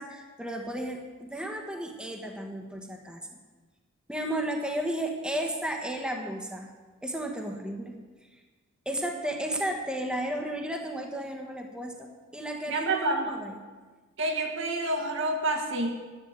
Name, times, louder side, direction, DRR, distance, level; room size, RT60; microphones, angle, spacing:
voice 1, 0.0-3.4 4.1-6.7 7.0-8.0 8.8-13.6, right 1 dB, 5° right, 2 dB, 1.3 m, -33 dB
voice 2, 12.7-13.3 14.2-16.1, right 2 dB, 65° right, 2 dB, 2.0 m, -28 dB
11.0 x 7.8 x 9.5 m, 1.4 s
head